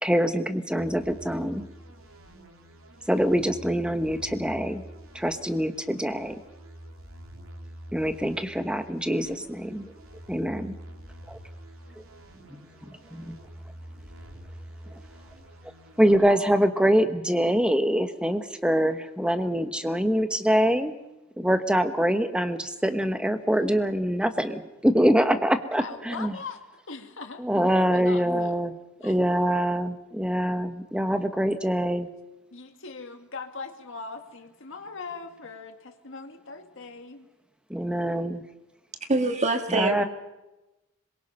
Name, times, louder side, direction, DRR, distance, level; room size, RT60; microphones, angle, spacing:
voice 1, 0.0-1.6 3.1-4.8 5.1-6.4 7.9-9.9 10.3-10.8 11.3-11.4 12.5-13.3 16.0-20.9 21.4-26.3 27.4-28.8 29.0-32.1 37.7-38.4 39.7-40.1, equal, 5° right, 8 dB, 1.2 m, -24 dB
sound 1, 0.8-16.1, right 1 dB, 85° right, 3.2 m, -46 dB
voice 2, 16.2-16.5 25.8-28.5 29.0-29.2 32.5-37.3, left 4 dB, 65° left, 5 dB, 2.0 m, -41 dB
voice 3, 39.1-40.1, right 2 dB, 35° right, 6 dB, 1.7 m, -24 dB
26.5 x 22.5 x 5.5 m, 1.0 s
head